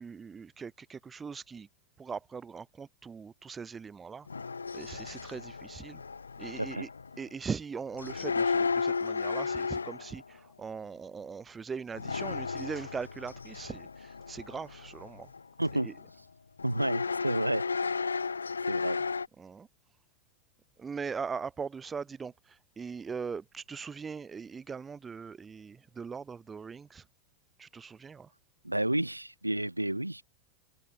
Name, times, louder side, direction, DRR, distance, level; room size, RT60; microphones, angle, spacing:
voice 1, 0.0-1.7 2.0-4.3 4.7-6.0 6.4-6.9 7.2-15.3 15.7-15.9 19.4-19.7 20.8-27.0 27.6-28.3, right 5 dB, 15° right, 0.9 m, -40 dB
sound 1, 4.3-7.2 7.9-10.2 11.9-15.4 15.7-16.1 16.6-19.3, left 5 dB, 75° left, 0.5 m, -34 dB
voice 2, 15.6-15.9 16.6-17.6 18.7-19.0 28.6-30.2, right 1 dB, 85° right, 0.9 m, -30 dB
figure-of-eight pair, 90°, 0 cm